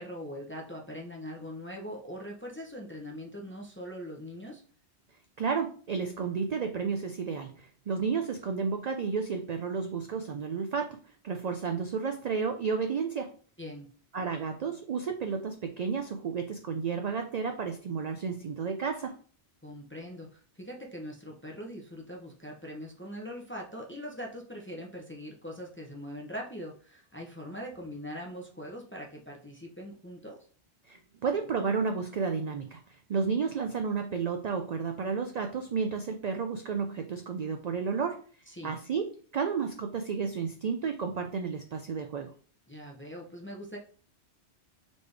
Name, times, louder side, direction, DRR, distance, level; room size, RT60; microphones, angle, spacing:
voice 1, 0.0-4.6 13.6-13.9 19.6-30.5 38.5-38.8 42.7-43.8, equal, 15° left, 0 dB, 0.6 m, -42 dB
voice 2, 5.4-11.0 11.2-13.3 14.1-19.2 30.9-32.8 33.1-38.2 38.6-42.3, right 5 dB, 60° right, 5 dB, 0.4 m, -32 dB
4.1 x 3.4 x 3.3 m, 0.42 s
omnidirectional pair, 1.1 m